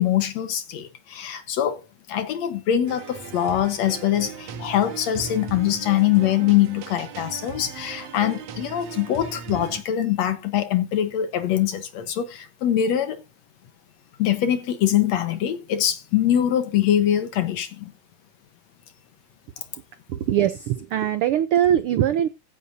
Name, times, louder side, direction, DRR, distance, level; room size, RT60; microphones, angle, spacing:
voice 1, 0.0-1.8 2.1-13.2 14.2-17.9, left 11 dB, 70° left, 2.2 m, -23 dB
sound 1, 2.9-9.8, right 6 dB, 65° right, 2.2 m, -37 dB
voice 2, 20.1-22.3, right 10 dB, 80° right, 1.2 m, -21 dB
15.0 x 9.5 x 2.7 m
omnidirectional pair, 3.3 m